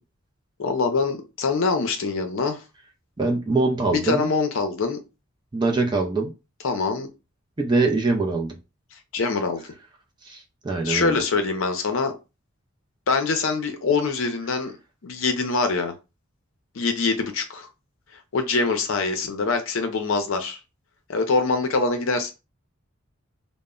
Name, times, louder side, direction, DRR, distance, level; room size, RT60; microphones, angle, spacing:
voice 1, 0.6-2.6 3.9-5.0 6.6-7.1 9.1-9.6 10.8-12.1 13.1-14.7 15.0-15.9 16.7-17.7 18.3-20.6 21.1-22.3, left 4 dB, 65° left, 0.5 m, -24 dB
voice 2, 3.2-4.3 5.5-6.3 7.6-8.6 10.2-11.2, right 3 dB, 20° right, 0.4 m, -23 dB
2.1 x 2.0 x 3.6 m
head